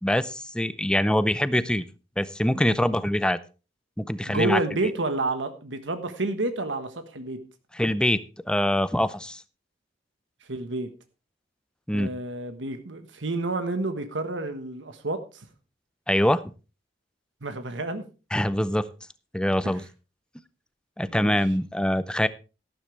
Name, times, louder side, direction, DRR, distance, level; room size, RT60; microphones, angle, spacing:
voice 1, 0.0-1.8 2.2-3.4 4.0-4.6 7.7-8.2 8.5-9.4 11.9-12.1 16.1-16.4 18.3-18.9 19.3-19.8 21.0-22.3, left 1 dB, 5° left, 15 dB, 0.6 m, -24 dB
voice 2, 4.2-7.4 10.5-10.9 11.9-15.5 17.4-18.0 19.6-19.8 21.1-21.4, right 2 dB, 75° right, 9 dB, 1.4 m, -30 dB
13.0 x 12.0 x 3.3 m, 0.32 s
head